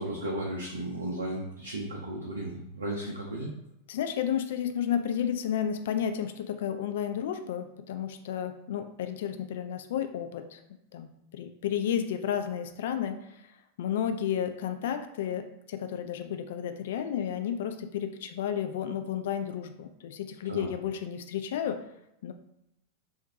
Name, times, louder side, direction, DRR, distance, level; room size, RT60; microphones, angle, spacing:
voice 1, 0.0-3.5 20.5-20.7, right 1 dB, 75° right, -2 dB, 0.5 m, -34 dB
voice 2, 3.9-10.6 10.9-13.4 13.8-21.8 22.2-22.3, left 9 dB, 55° left, 8 dB, 0.3 m, -32 dB
3.8 x 2.1 x 2.6 m, 0.84 s
figure-of-eight pair, 90°, 0 cm